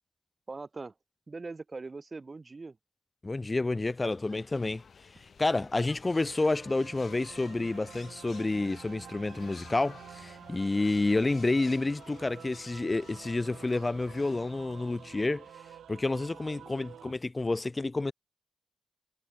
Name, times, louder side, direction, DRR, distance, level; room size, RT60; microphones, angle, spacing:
voice 1, 0.5-0.9 1.3-2.8, right 3 dB, 40° right, 1.7 m, -41 dB
voice 2, 3.2-4.8 5.2-15.5 15.9-18.1, left 2 dB, 30° left, 0.4 m, -29 dB
sound 1, 3.8-15.4, left 5 dB, 65° left, 3.3 m, -54 dB
sound 2, 6.2-17.1, right 10 dB, 90° right, 2.1 m, -50 dB
cardioid pair, 50°, 0 cm